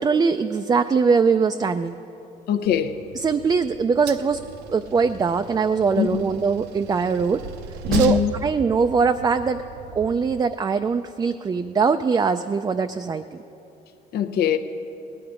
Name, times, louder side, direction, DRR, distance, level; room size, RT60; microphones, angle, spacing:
voice 1, 0.0-2.0 3.2-4.4 4.7-7.4 7.9-9.6 10.0-13.2, right 5 dB, 25° right, 0.3 m, -21 dB
voice 2, 2.5-3.0 6.0-6.2 7.9-8.3 14.1-14.6, left 9 dB, 70° left, 0.8 m, -22 dB
Train, 2.7-10.4, right 7 dB, 80° right, 0.7 m, -35 dB
18.0 x 9.7 x 5.0 m
cardioid pair, 110°, 17 cm